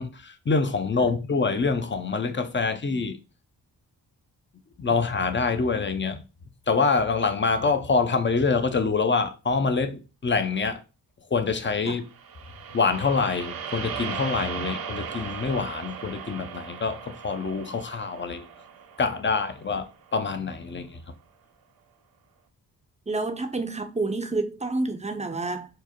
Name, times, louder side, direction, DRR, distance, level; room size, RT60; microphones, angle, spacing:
voice 1, 0.0-3.2 4.8-6.2 6.7-10.8 11.3-12.0 12.7-18.5 19.0-21.0, left 4 dB, 30° left, 0.6 m, -25 dB
sound 1, 12.1-20.4, right 7 dB, 60° right, 0.6 m, -38 dB
voice 2, 23.1-25.8, right 3 dB, 15° right, 0.6 m, -29 dB
4.7 x 2.1 x 2.9 m
supercardioid pair, 45°, 41 cm